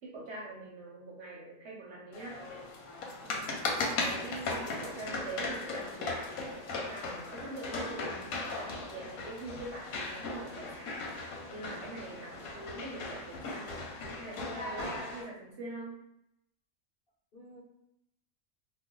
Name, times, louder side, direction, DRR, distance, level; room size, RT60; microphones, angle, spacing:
voice 1, 0.0-2.5 3.2-3.5 4.0-10.9 11.5-13.9 14.2-16.0, right 2 dB, 60° right, -3 dB, 0.8 m, -44 dB
sound 1, 2.1-15.2, left 3 dB, 85° left, 1.1 m, -37 dB
voice 2, 3.2-3.6 17.3-17.6, equal, 50° left, -5 dB, 0.9 m, -52 dB
2.4 x 2.1 x 3.7 m, 0.80 s
omnidirectional pair, 1.4 m